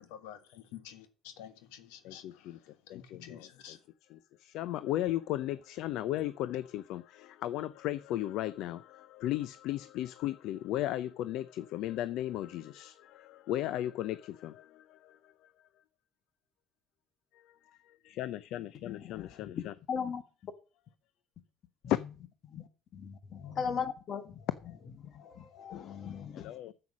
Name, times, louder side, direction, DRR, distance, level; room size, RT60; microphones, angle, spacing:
voice 1, 0.2-2.2 2.9-3.8, left 10 dB, 90° left, 1.5 m, -49 dB
voice 2, 2.0-2.6 2.9-3.8 4.1-15.5 17.3-17.5 17.8-19.7 21.9-22.0 26.3-26.7, left 13 dB, 70° left, 0.5 m, -36 dB
voice 3, 18.8-20.5 22.4-22.7 22.9-24.5 25.0-26.7, left 7 dB, 55° left, 1.7 m, -39 dB
9.4 x 7.7 x 6.2 m
supercardioid pair, 95°, 0 cm